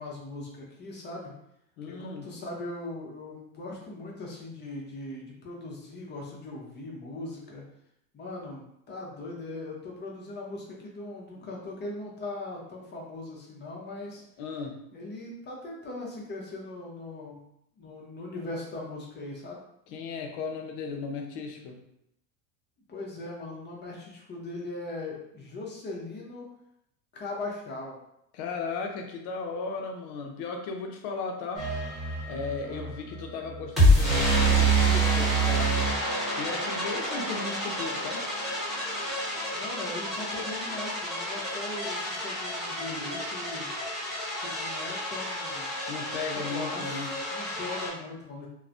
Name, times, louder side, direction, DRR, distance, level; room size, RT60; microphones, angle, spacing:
voice 1, 0.0-1.3 1.9-7.6 8.1-14.2 14.9-17.4 17.8-19.6 22.9-26.5 27.1-28.0 32.6-32.9 39.5-43.7 44.3-45.8 46.3-47.0 47.3-48.5, left 2 dB, 25° left, -2 dB, 0.7 m, -39 dB
voice 2, 1.8-2.3 11.4-11.5 14.4-14.8 19.9-21.8 28.3-31.7 32.3-35.8 36.4-38.2 45.9-47.1, left 4 dB, 60° left, 3 dB, 0.7 m, -36 dB
sound 1, 31.6-47.9, right 1 dB, ahead, 1.1 m, -28 dB
3.1 x 2.1 x 2.5 m, 0.77 s
supercardioid pair, 115°, 45 cm